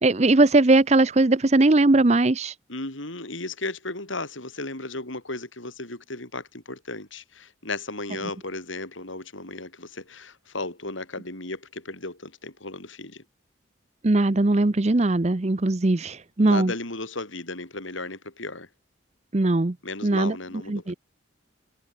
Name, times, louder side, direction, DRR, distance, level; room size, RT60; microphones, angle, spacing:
voice 1, 0.0-2.5 14.0-16.7 19.3-19.8 20.0-20.3 20.7-20.9, right 2 dB, 35° right, 0.7 m, -20 dB
voice 2, 2.7-13.2 16.4-18.7 19.8-21.0, left 2 dB, 80° left, 6.2 m, -35 dB
head